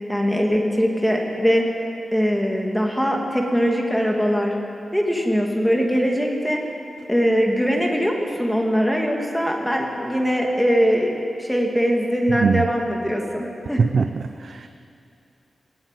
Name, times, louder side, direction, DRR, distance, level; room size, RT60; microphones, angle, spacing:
voice 1, 0.1-1.7 2.1-4.5 4.9-6.6 7.1-11.1 11.4-13.8, equal, 5° left, 0 dB, 2.5 m, -21 dB
voice 2, 12.3-12.7 13.8-14.7, right 5 dB, 55° right, 8 dB, 0.6 m, -22 dB
21.5 x 18.0 x 9.2 m, 2.7 s
wide cardioid pair, 175°, 0 cm